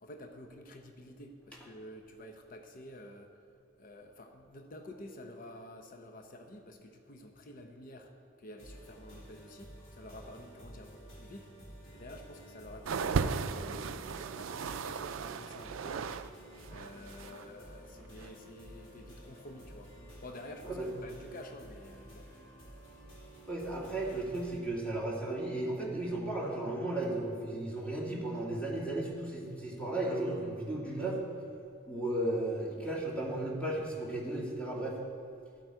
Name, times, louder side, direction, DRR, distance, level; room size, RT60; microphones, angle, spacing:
voice 1, 0.0-3.4 3.8-8.1 8.4-11.5 11.9-16.1 16.7-19.9 20.2-22.3, left 1 dB, 45° left, 4 dB, 0.8 m, -50 dB
sound 1, 8.6-24.6, right 1 dB, 70° left, 3.1 m, -52 dB
sound 2, 12.9-16.3 16.5-17.4 18.2-18.3, right 5 dB, 80° right, 0.4 m, -36 dB
voice 2, 23.5-31.2 31.9-35.0, right 1 dB, 5° left, -4 dB, 2.0 m, -35 dB
13.0 x 7.9 x 4.6 m, 2.5 s
head